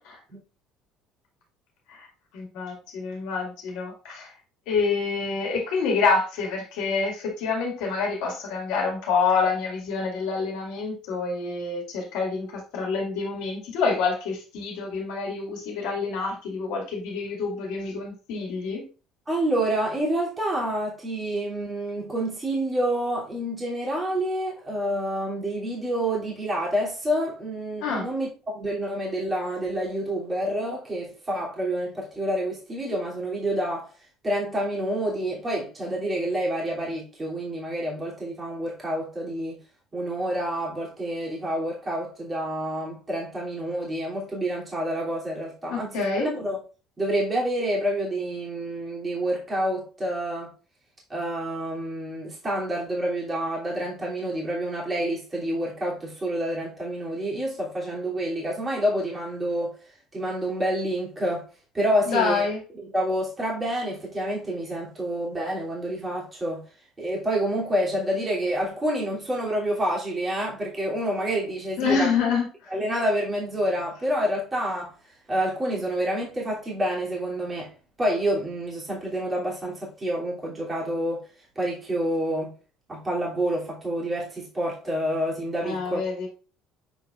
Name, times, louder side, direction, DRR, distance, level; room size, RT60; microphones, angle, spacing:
voice 1, 2.3-4.3 4.7-18.8 27.8-28.1 45.7-46.3 62.1-62.6 71.8-72.7 85.6-86.3, left 4 dB, 70° left, 2.2 m, -27 dB
voice 2, 19.3-33.9 34.2-39.6 39.9-46.6 47.0-50.5 51.1-59.8 60.1-61.5 61.7-62.4 62.8-66.6 67.0-72.1 72.7-74.9 75.3-77.7 78.0-81.2 81.5-82.5 82.9-86.0, right 1 dB, 25° right, 3.0 m, -28 dB
7.9 x 4.9 x 2.5 m
hypercardioid pair, 65°, 0 cm